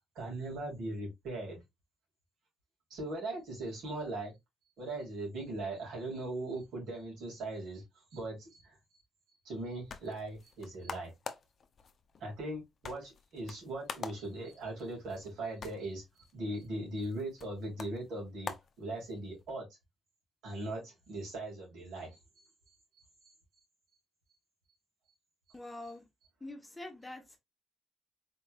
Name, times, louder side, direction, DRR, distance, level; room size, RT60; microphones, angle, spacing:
voice 1, 0.1-1.6 2.9-4.3 4.8-7.8 8.1-8.7 9.4-11.1 12.2-16.0 16.3-18.5 18.8-19.6 20.4-22.2, right 2 dB, 80° right, 2.5 m, -39 dB
sound 1, 9.5-19.5, left 5 dB, 50° left, 0.6 m, -48 dB
voice 2, 25.5-26.0 26.4-27.4, left 2 dB, 15° left, 1.0 m, -45 dB
4.3 x 3.2 x 2.4 m
cardioid pair, 90°, 0 cm